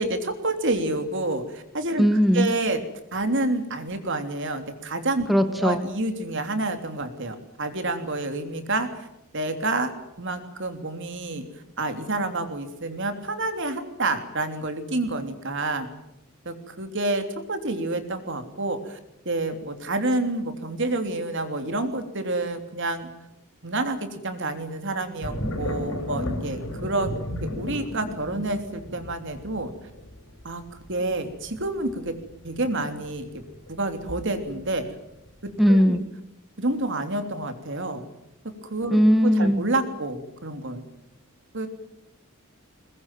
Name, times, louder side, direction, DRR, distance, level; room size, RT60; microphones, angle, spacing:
voice 1, 0.0-2.0 2.3-2.8 3.1-9.1 9.3-9.9 10.2-11.4 11.8-15.9 16.4-19.0 19.2-23.1 23.6-27.1 27.4-29.7 30.4-30.6 30.9-32.2 32.4-33.4 33.7-34.8 35.4-36.0 36.6-38.0 38.4-40.8 41.5-41.7, right 2 dB, 60° right, 7 dB, 3.3 m, -28 dB
voice 2, 2.0-2.5 5.3-5.9 35.6-36.0 38.9-39.6, equal, ahead, 8 dB, 1.2 m, -19 dB
sound 1, 25.2-34.8 35.3-35.8, left 1 dB, 70° left, 5.8 m, -34 dB
22.0 x 21.0 x 9.2 m, 0.85 s
head